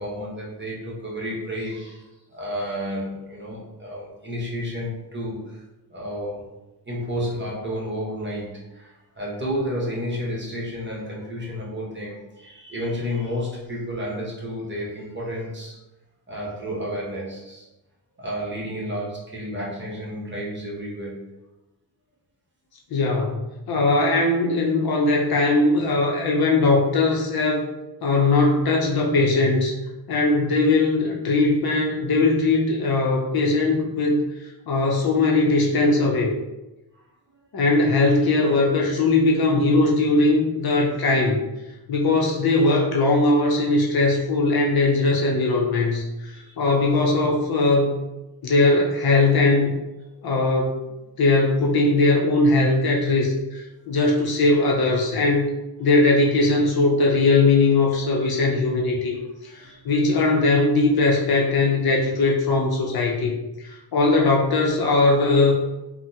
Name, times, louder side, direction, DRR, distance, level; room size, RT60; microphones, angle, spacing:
voice 1, 0.0-5.6 5.9-6.4 6.8-15.8 16.3-17.7 18.2-21.2 36.9-37.0 37.3-37.4 46.3-46.6 50.2-50.3 57.2-57.3 58.0-58.3 59.5-59.9, equal, 25° right, -5 dB, 1.0 m, -31 dB
voice 2, 22.9-23.4 23.7-27.7 28.0-29.7 30.1-34.2 34.7-36.4 37.5-41.4 41.9-48.0 48.4-49.7 50.2-50.8 51.2-55.5 55.8-59.2 59.4-63.3 63.6-65.5, left 2 dB, 55° left, -1 dB, 0.6 m, -20 dB
3.3 x 2.1 x 2.7 m, 1.0 s
cardioid pair, 100°, 44 cm